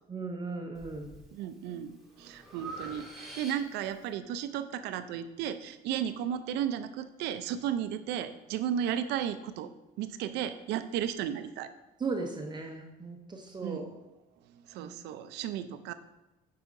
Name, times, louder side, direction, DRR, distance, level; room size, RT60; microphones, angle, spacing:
voice 1, 0.1-1.2 12.0-13.9 14.8-14.9, right 3 dB, 25° right, 3 dB, 0.6 m, -37 dB
Breathing, 0.7-1.2 1.7-4.0, right 2 dB, ahead, 1.4 m, -45 dB
voice 2, 1.3-9.7 10.0-11.7 13.6-13.9 14.5-15.9, right 9 dB, 85° right, 11 dB, 0.4 m, -34 dB
8.0 x 4.8 x 2.5 m, 0.98 s
cardioid pair, 110°, 17 cm